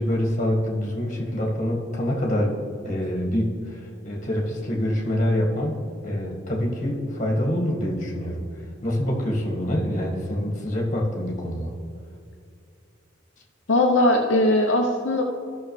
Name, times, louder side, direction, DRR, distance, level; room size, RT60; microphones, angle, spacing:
voice 1, 0.0-8.5 8.8-11.7, left 1 dB, 40° left, -1 dB, 1.7 m, -26 dB
voice 2, 13.7-15.2, left 1 dB, 75° left, 1 dB, 0.8 m, -19 dB
14.0 x 6.2 x 3.2 m, 2.3 s
head